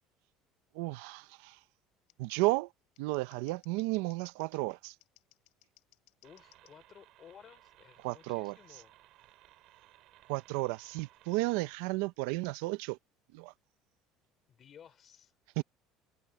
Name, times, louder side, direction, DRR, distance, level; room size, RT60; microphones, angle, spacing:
voice 1, 0.7-1.6 2.2-2.7 3.0-4.9 8.0-8.8 10.3-13.0 13.3-13.5 15.6-15.7, right 22 dB, 80° right, 0.8 m, -33 dB
Scissors, 1.0-1.1 2.1-2.2 2.8-6.7 8.3-8.5, left 30 dB, 80° left, 4.4 m, -65 dB
voice 2, 6.2-8.9 14.5-15.3 15.6-15.7, left 8 dB, 45° left, 4.2 m, -56 dB
sound 1, 6.2-11.8, right 16 dB, 65° right, 3.2 m, -61 dB
supercardioid pair, 95°, 0 cm